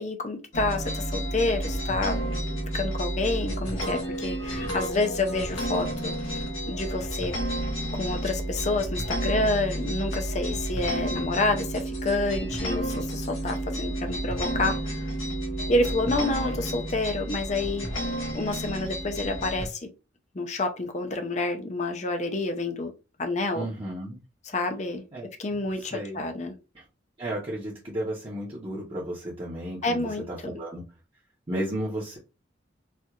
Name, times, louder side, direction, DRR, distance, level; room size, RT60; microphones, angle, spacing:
voice 1, 0.0-2.2 2.7-7.4 7.9-15.1 15.7-17.9 18.3-19.9 20.3-22.9 23.2-23.7 24.4-25.0 25.4-26.6 29.8-30.6, left 2 dB, 35° left, 0.6 m, -28 dB
sound 1, 0.5-19.7, right 1 dB, 85° left, 1.4 m, -31 dB
voice 2, 23.5-24.2 25.1-25.3 25.8-26.2 26.7-26.8 27.2-30.8 31.5-32.2, right 1 dB, 25° right, 0.9 m, -33 dB
4.4 x 2.5 x 2.4 m
head